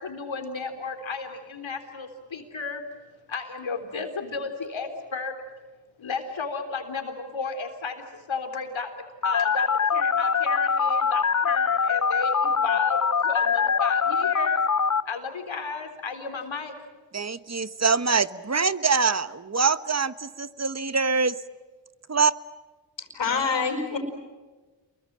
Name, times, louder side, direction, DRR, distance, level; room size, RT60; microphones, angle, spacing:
voice 1, 0.0-2.8 3.3-5.3 6.0-8.9 9.2-14.6 15.1-16.7, left 4 dB, 90° left, 5 dB, 3.7 m, -33 dB
Telephone, 9.2-15.0, left 6 dB, 40° left, 0.9 m, -23 dB
voice 2, 17.1-21.3 22.1-22.3, right 5 dB, 35° right, 14 dB, 1.2 m, -24 dB
voice 3, 23.0-24.0, left 5 dB, 70° left, 4 dB, 5.1 m, -26 dB
28.5 x 22.5 x 7.5 m, 1.3 s
cardioid pair, 50°, 45 cm